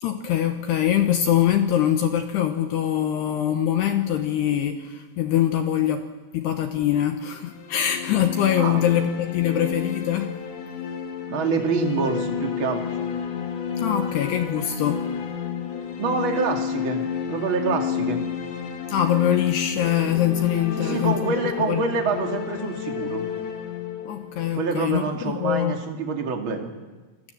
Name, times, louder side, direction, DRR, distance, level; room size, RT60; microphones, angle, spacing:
voice 1, 0.0-6.1 6.3-10.4 13.8-15.1 18.9-21.4 21.7-21.9 24.1-25.7, left 10 dB, 75° left, 6 dB, 2.6 m, -23 dB
sound 1, 7.4-25.4, left 7 dB, 55° left, 1.9 m, -31 dB
voice 2, 11.3-13.0 16.0-18.2 20.8-23.3 24.5-26.7, right 4 dB, 40° right, 2 dB, 1.8 m, -26 dB
29.5 x 21.0 x 7.8 m, 1.3 s
omnidirectional pair, 6.0 m